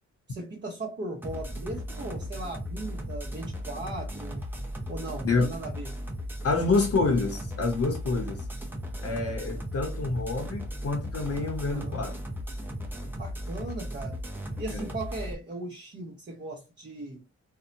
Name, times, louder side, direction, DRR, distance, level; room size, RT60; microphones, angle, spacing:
voice 1, 0.3-4.5 4.9-6.0 11.6-12.0 13.2-14.2 14.6-17.2, right 2 dB, 40° right, 0.8 m, -38 dB
sound 1, 1.2-15.3, equal, 5° right, 0.6 m, -36 dB
voice 2, 6.4-8.5 9.0-12.2 14.7-14.9, left 3 dB, 55° left, 0.7 m, -27 dB
2.7 x 2.1 x 2.6 m
cardioid pair, 90°, 29 cm